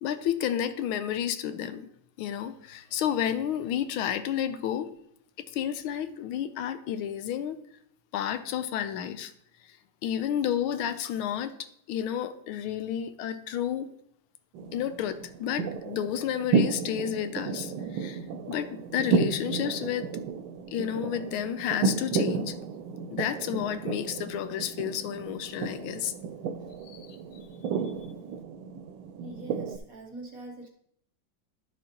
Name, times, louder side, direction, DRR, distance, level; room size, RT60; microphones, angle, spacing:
voice 1, 0.0-1.9 2.2-4.9 5.5-7.6 8.1-9.3 10.0-11.5 11.9-13.9 14.7-18.2 18.5-20.1 20.7-22.5 23.1-26.1 26.9-27.2, left 10 dB, 85° left, 11 dB, 1.5 m, -31 dB
sound 1, 14.5-29.8, right 5 dB, 80° right, 1.3 m, -32 dB
voice 2, 29.2-30.7, right 2 dB, 55° right, 2 dB, 1.0 m, -43 dB
10.5 x 6.2 x 2.9 m, 0.71 s
omnidirectional pair, 2.2 m